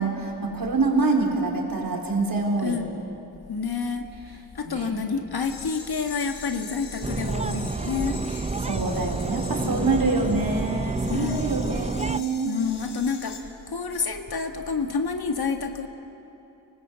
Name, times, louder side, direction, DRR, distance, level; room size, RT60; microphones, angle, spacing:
voice 1, 0.0-2.8 4.6-5.0 8.3-12.5, right 3 dB, 60° right, 0 dB, 3.8 m, -26 dB
voice 2, 3.5-8.1 9.6-10.1 11.1-11.4 12.4-15.9, left 5 dB, 70° left, 5 dB, 1.7 m, -29 dB
sound 1, 5.4-13.4, left 5 dB, 85° left, 2.3 m, -44 dB
sound 2, 7.0-12.2, right 3 dB, 20° right, 0.4 m, -29 dB
24.0 x 19.0 x 8.1 m, 2.9 s
cardioid pair, 65°, 39 cm